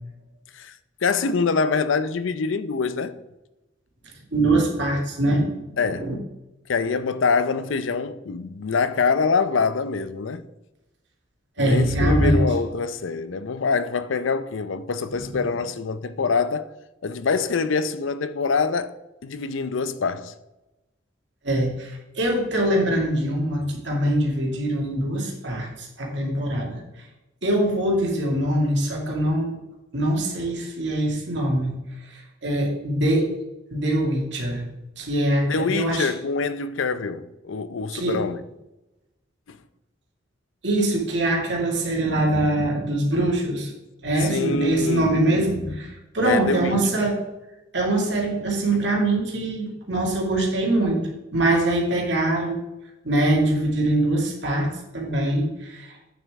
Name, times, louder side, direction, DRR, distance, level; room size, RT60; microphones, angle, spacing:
voice 1, 1.0-3.2 5.8-6.1 6.7-10.4 11.6-16.7 17.0-18.9 19.2-20.3 35.5-38.4 39.5-39.6 44.2-45.3 46.2-47.0, left 4 dB, 85° left, 0.5 m, -25 dB
voice 2, 4.3-5.5 5.8-6.1 11.6-12.4 15.2-15.3 21.4-26.8 27.4-29.6 29.9-31.8 32.1-33.3 33.7-34.6 35.0-36.1 37.9-38.2 40.6-43.7 44.0-47.2 47.7-52.6 53.0-55.9, right 1 dB, 65° right, 2.3 m, -23 dB
8.7 x 7.2 x 3.6 m
head